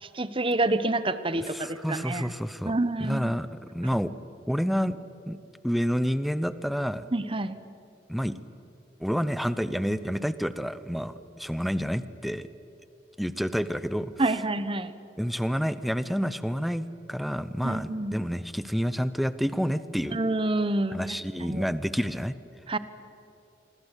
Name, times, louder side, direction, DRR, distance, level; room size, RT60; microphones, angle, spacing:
voice 1, 0.0-2.3 2.6-3.4 7.1-7.6 14.2-14.9 17.6-18.2 20.1-21.0 21.4-21.7 22.7-22.8, right 2 dB, 30° right, 13 dB, 1.0 m, -28 dB
voice 2, 1.3-2.7 3.0-4.1 4.5-5.0 5.3-5.4 5.6-7.0 8.1-8.3 9.0-12.5 13.2-14.1 15.2-20.2 20.9-22.3, equal, ahead, 13 dB, 0.8 m, -29 dB
27.0 x 24.0 x 8.3 m, 2.7 s
head